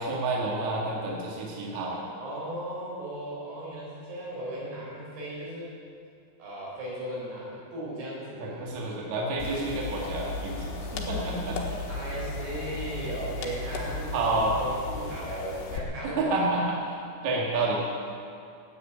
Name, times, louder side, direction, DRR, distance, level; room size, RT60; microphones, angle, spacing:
voice 1, 0.0-2.0 8.4-11.9 14.1-14.5 16.0-16.8 17.2-17.8, right 2 dB, 50° right, -4 dB, 3.1 m, -29 dB
voice 2, 2.2-5.8 6.4-8.8 11.9-16.5 17.6-17.9, right 1 dB, 90° right, -6 dB, 7.1 m, -37 dB
sound 1, 9.4-15.8, left 2 dB, 90° left, 3.6 m, -35 dB
14.0 x 8.5 x 9.1 m, 2.5 s
omnidirectional pair, 4.8 m